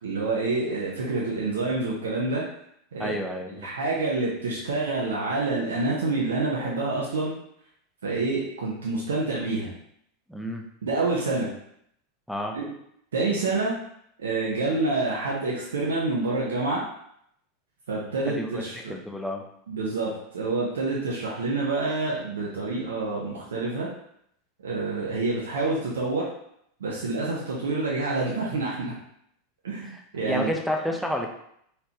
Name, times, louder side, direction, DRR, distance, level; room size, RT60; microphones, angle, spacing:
voice 1, 0.0-2.4 2.9-3.1 3.6-7.3 8.0-9.7 10.8-11.5 12.5-12.7 13.1-13.7 14.2-16.8 17.9-18.9 19.7-23.9 24.6-26.3 26.8-28.9 29.6-30.5, right 3 dB, 75° right, -4 dB, 0.8 m, -27 dB
voice 2, 3.0-3.7 10.3-10.6 12.3-12.6 18.3-18.6 18.9-19.4 29.8-30.0 30.2-31.3, equal, ahead, 3 dB, 0.7 m, -30 dB
4.2 x 3.2 x 2.9 m, 0.72 s
figure-of-eight pair, 90°, 0 cm